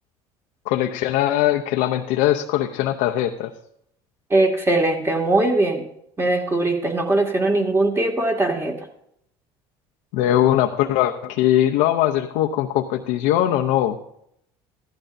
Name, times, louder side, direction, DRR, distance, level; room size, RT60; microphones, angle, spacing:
voice 1, 0.7-3.5 10.1-14.0, left 12 dB, 80° left, 3 dB, 0.7 m, -20 dB
voice 2, 4.3-5.8 6.2-8.8, right 2 dB, 20° right, 2 dB, 2.1 m, -20 dB
15.5 x 12.0 x 2.6 m, 0.75 s
supercardioid pair, 105°, 13 cm